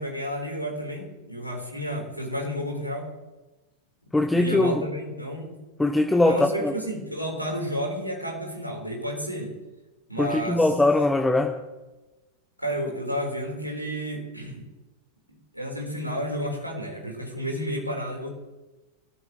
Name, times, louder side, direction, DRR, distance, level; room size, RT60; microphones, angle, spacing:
voice 1, 0.0-3.1 4.3-5.5 6.2-9.6 10.1-10.7 12.6-14.6 15.5-18.3, equal, 90° right, 0 dB, 4.1 m, -31 dB
voice 2, 4.1-4.7 5.8-6.7 10.2-11.5, left 2 dB, 5° left, 4 dB, 1.1 m, -21 dB
24.0 x 14.5 x 3.2 m, 1.1 s
figure-of-eight pair, 90°, 0 cm